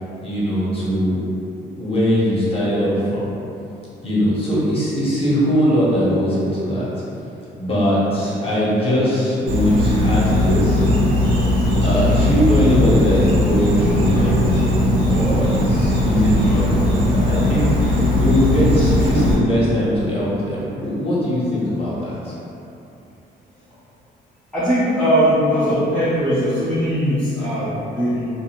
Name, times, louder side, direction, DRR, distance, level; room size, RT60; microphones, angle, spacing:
voice 1, 0.2-1.2 1.8-3.3 4.0-7.0 7.6-10.8 11.8-22.3, equal, 30° left, -8 dB, 0.9 m, -20 dB
Insect, 9.5-19.3, left 1 dB, 85° right, 1.1 m, -18 dB
voice 2, 24.5-28.3, equal, 5° left, -12 dB, 0.5 m, -19 dB
2.6 x 2.1 x 2.8 m, 2.8 s
cardioid pair, 90°, 20 cm